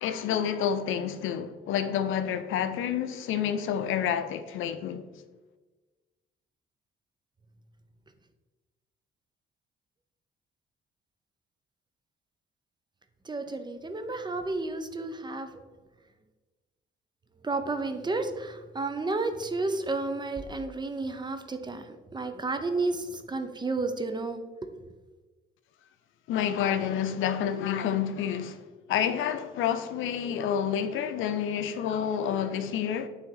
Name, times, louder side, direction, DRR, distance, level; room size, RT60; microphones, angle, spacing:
voice 1, 0.0-5.0 26.3-28.6 28.9-33.1, left 8 dB, 85° left, 0.5 m, -29 dB
voice 2, 13.3-15.5 17.4-21.8 22.1-24.4, right 3 dB, 20° right, 0.7 m, -31 dB
8.9 x 3.5 x 3.8 m
cardioid pair, 90°, 20 cm